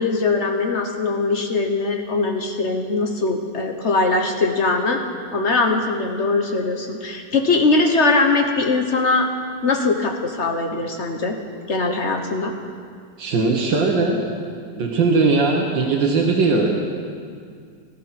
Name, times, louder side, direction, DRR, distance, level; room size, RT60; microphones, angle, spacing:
voice 1, 0.0-5.0 5.3-9.3 9.6-11.4 11.7-12.5, left 3 dB, 45° left, 3 dB, 1.2 m, -21 dB
voice 2, 13.2-14.2 14.7-16.7, right 3 dB, 80° right, 0 dB, 2.0 m, -19 dB
18.0 x 12.0 x 5.8 m, 2.2 s
omnidirectional pair, 2.0 m